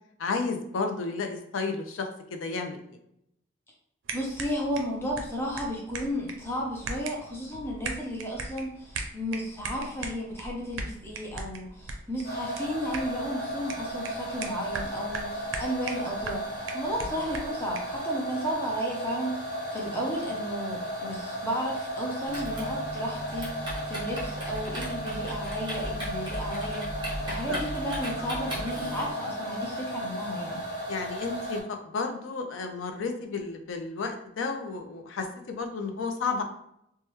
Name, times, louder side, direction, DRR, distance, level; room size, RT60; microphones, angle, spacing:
voice 1, 0.2-3.0 27.5-27.6 28.2-28.3 30.9-36.4, left 4 dB, 75° left, 5 dB, 0.5 m, -32 dB
sound 1, 4.0-18.0, right 3 dB, 75° right, 0.5 m, -40 dB
voice 2, 4.1-16.5 16.7-26.9 27.3-30.6, equal, 15° left, -3 dB, 0.6 m, -33 dB
sound 2, 12.2-31.6, equal, 45° left, 1.2 m, -35 dB
Typing, 22.3-29.1, equal, 25° right, 1.3 m, -36 dB
3.2 x 2.2 x 3.0 m, 0.76 s
head